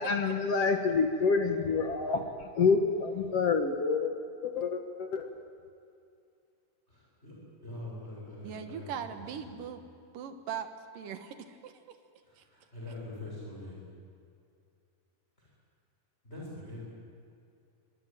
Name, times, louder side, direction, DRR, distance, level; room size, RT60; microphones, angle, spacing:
voice 1, 0.0-4.1 4.4-5.3, left 4 dB, 55° left, 5 dB, 1.9 m, -28 dB
voice 2, 6.9-7.4 7.6-9.7 12.2-13.8 15.4-15.5 16.2-16.8, left 1 dB, 15° left, -5 dB, 7.7 m, -44 dB
voice 3, 8.4-9.8 10.1-10.7 10.9-12.0 12.4-12.5, right 8 dB, 65° right, 7 dB, 3.0 m, -40 dB
25.0 x 22.0 x 9.2 m, 2.5 s
omnidirectional pair, 4.3 m